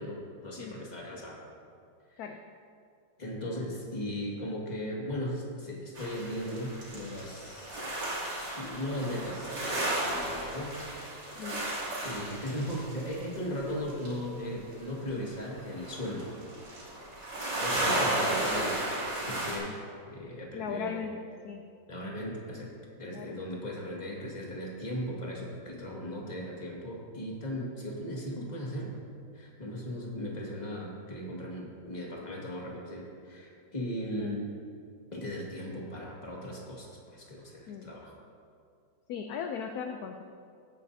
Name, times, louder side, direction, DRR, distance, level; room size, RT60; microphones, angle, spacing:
voice 1, 0.0-1.4 2.1-2.3 3.2-7.8 8.6-10.8 11.4-11.6 12.0-16.3 17.6-18.8 19.2-19.8 20.1-21.1 21.9-22.7 23.0-28.9 29.3-34.5 35.1-38.1, equal, 25° left, -3 dB, 1.8 m, -37 dB
sound 1, 5.9-14.1 15.1-15.2 15.4-19.6, right 1 dB, 65° right, 3.4 m, -34 dB
voice 2, 20.5-21.6 23.1-23.4 34.2-34.4 37.7-37.9 39.1-40.2, left 6 dB, 70° left, 5 dB, 0.9 m, -38 dB
16.0 x 9.1 x 2.7 m, 2.4 s
omnidirectional pair, 2.0 m